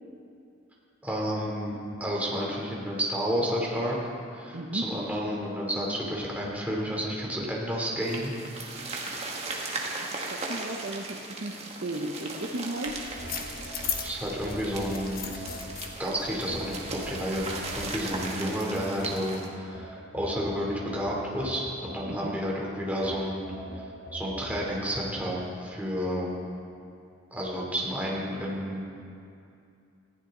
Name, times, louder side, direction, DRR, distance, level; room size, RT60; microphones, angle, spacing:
voice 1, 1.0-4.0 4.3-8.3 9.8-9.9 13.4-13.5 14.0-15.5 16.0-17.5 17.8-23.5 24.1-26.3 27.3-28.8, equal, 10° right, -4 dB, 3.1 m, -31 dB
voice 2, 4.5-4.8 9.7-11.6 11.8-13.0 22.1-22.3, right 1 dB, 60° right, 2 dB, 0.9 m, -35 dB
sound 1, 8.0-19.5, right 3 dB, 35° right, 1.9 m, -38 dB
sound 2, 12.9-18.3, left 7 dB, 50° left, 1.3 m, -39 dB
sound 3, 13.2-16.0 16.5-19.2 19.7-22.5 23.0-24.7, right 1 dB, 80° left, 3.4 m, -43 dB
20.0 x 15.5 x 3.9 m, 2.5 s
head